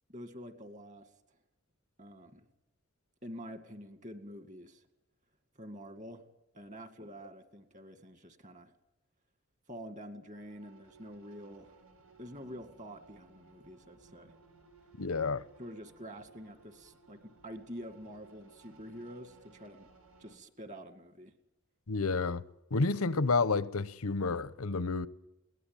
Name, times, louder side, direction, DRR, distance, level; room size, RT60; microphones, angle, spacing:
voice 1, 0.1-1.1 2.0-2.4 3.2-4.8 5.6-6.3 6.5-8.7 9.7-11.8 12.2-14.3 15.6-19.9 20.2-21.3, equal, 35° right, 2.1 m, -47 dB
sound 1, 10.3-20.4, right 4 dB, 80° right, 4.7 m, -61 dB
voice 2, 15.0-15.4 21.9-22.4 22.7-25.1, left 4 dB, 85° left, 0.9 m, -30 dB
21.5 x 18.0 x 9.0 m
head